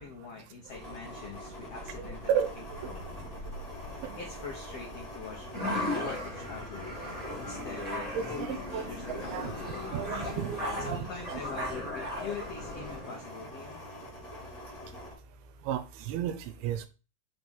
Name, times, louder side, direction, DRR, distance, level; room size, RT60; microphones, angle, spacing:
voice 1, 0.0-3.1 4.2-6.9 7.4-9.8 10.8-13.8, left 5 dB, 85° left, 1.4 m, -44 dB
sound 1, 0.7-15.1, left 1 dB, 30° left, 1.4 m, -44 dB
sound 2, 0.7-13.0, left 1 dB, 60° right, 1.0 m, -50 dB
voice 2, 2.0-2.5 2.8-2.9 8.1-9.5 9.9-11.7 15.7-16.9, right 9 dB, 85° right, 2.7 m, -33 dB
sound 3, 5.5-13.2, left 1 dB, 15° right, 1.3 m, -37 dB
6.0 x 3.2 x 5.2 m
omnidirectional pair, 4.4 m